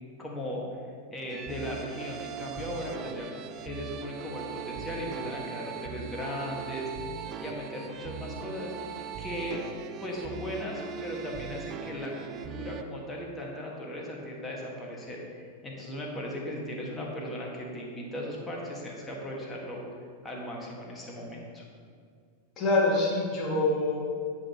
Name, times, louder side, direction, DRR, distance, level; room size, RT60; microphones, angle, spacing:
voice 1, 0.2-0.6 1.1-6.9 7.4-8.7 9.2-9.6 10.0-19.8 20.2-21.6, left 1 dB, 15° left, -2 dB, 1.8 m, -37 dB
sound 1, 1.3-12.8, right 7 dB, 35° right, 0.5 m, -40 dB
voice 2, 22.6-24.0, left 2 dB, 30° left, -4 dB, 2.2 m, -25 dB
9.6 x 7.7 x 3.0 m, 2.1 s
figure-of-eight pair, 90°, 0 cm